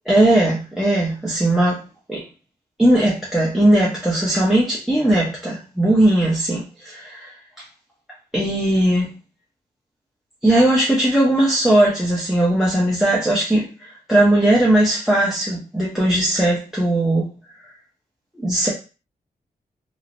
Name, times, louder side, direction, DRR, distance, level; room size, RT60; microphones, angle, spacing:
voice 1, 0.1-1.8 2.1-2.2 2.8-7.3 8.3-9.1 10.4-17.3 18.4-18.7, right 1 dB, ahead, -5 dB, 0.7 m, -18 dB
3.1 x 2.0 x 2.5 m, 0.33 s
wide cardioid pair, 105°, 16 cm